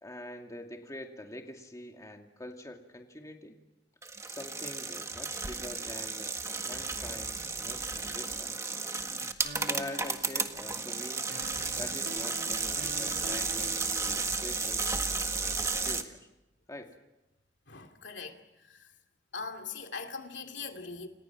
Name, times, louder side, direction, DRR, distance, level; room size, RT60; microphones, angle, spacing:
voice 1, 0.0-3.6 4.3-8.8 9.6-11.3 11.8-16.3 16.7-16.9, left 1 dB, 20° left, 2.4 m, -45 dB
sound 1, 4.0-16.0, right 4 dB, 15° right, 1.7 m, -33 dB
sound 2, 8.8-9.2 9.4-10.9 11.3-14.4, right 2 dB, 65° right, 2.6 m, -47 dB
voice 2, 17.7-18.4 18.6-18.8 19.3-21.1, left 4 dB, 80° left, 2.6 m, -41 dB
29.0 x 28.5 x 6.0 m
head